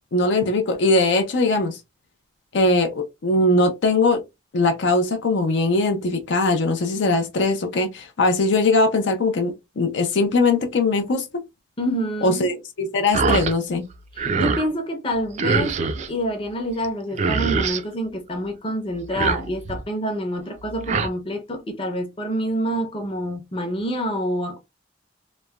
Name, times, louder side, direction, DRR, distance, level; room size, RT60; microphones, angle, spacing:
voice 1, 0.1-1.8 2.5-4.2 4.5-11.2 12.2-13.9, left 2 dB, 65° left, 0.5 m, -20 dB
voice 2, 11.8-12.5 14.1-24.6, equal, 30° left, 0.7 m, -27 dB
sound 1, 13.1-13.5 13.9-14.7 15.4-16.1 16.8-16.9 17.1-17.8 19.0-19.8 20.6-21.1, right 4 dB, 35° right, 0.3 m, -24 dB
3.1 x 2.1 x 2.2 m
head